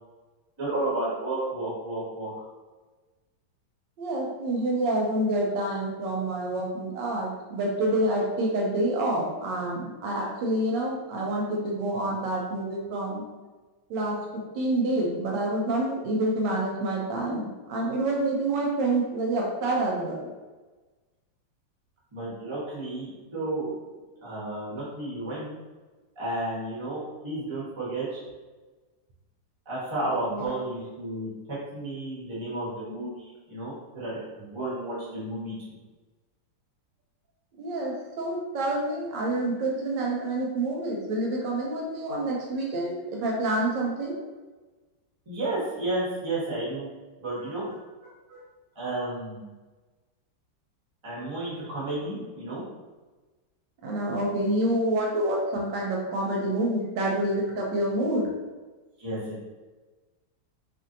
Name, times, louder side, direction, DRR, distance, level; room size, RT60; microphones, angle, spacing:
voice 1, 0.6-2.3 22.1-23.7 24.2-25.5 26.1-28.2 29.7-35.5 45.3-46.9 47.2-47.7 48.7-49.5 51.0-52.6 59.0-59.5, right 2 dB, 25° right, -8 dB, 0.7 m, -32 dB
voice 2, 4.0-13.2 13.9-20.3 30.3-30.5 37.6-44.2 48.3-48.4 53.8-58.3, right 1 dB, 75° right, -2 dB, 1.2 m, -27 dB
3.0 x 2.5 x 2.5 m, 1.3 s
omnidirectional pair, 2.1 m